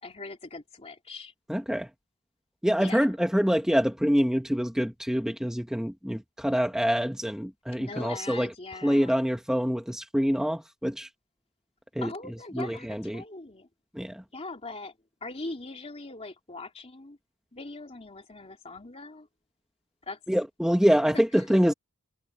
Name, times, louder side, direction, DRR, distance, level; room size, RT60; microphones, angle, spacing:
voice 1, 0.0-1.3 2.8-3.1 7.8-9.2 12.0-13.7 14.3-17.2 17.5-19.3 20.0-20.2 21.1-21.5, left 3 dB, 25° left, 2.9 m, -41 dB
voice 2, 1.5-1.9 2.6-8.5 8.8-11.1 11.9-12.1 12.5-13.2 13.9-14.2 20.3-21.7, equal, 5° right, 1.2 m, -25 dB
head